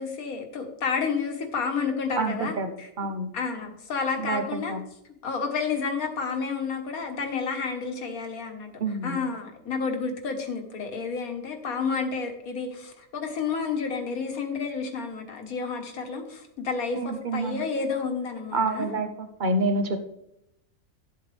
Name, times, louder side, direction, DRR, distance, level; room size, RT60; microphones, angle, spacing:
voice 1, 0.0-2.9 3.3-4.8 5.2-18.9, left 5 dB, 75° left, 4 dB, 1.8 m, -30 dB
voice 2, 2.2-2.7 3.0-3.3 4.2-4.8 8.8-9.2 16.9-17.6 18.5-19.1 19.4-20.0, right 2 dB, 40° right, 7 dB, 0.9 m, -27 dB
12.0 x 7.9 x 3.4 m, 0.81 s
omnidirectional pair, 1.5 m